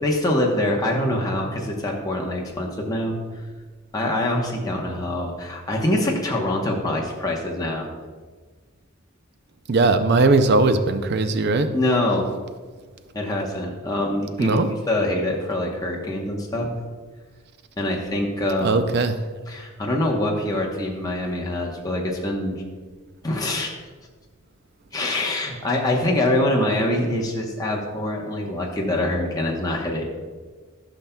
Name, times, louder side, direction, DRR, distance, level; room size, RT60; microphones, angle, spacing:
voice 1, 0.0-3.2 3.9-7.9 11.7-12.3 13.1-14.6 14.9-16.7 17.8-18.8 19.5-22.6 23.2-23.7 24.9-30.1, left 1 dB, 20° left, -2 dB, 0.9 m, -24 dB
voice 2, 9.7-11.7 14.4-14.7 18.6-19.2, right 3 dB, 50° right, 10 dB, 0.4 m, -19 dB
12.0 x 5.7 x 2.3 m, 1.4 s
head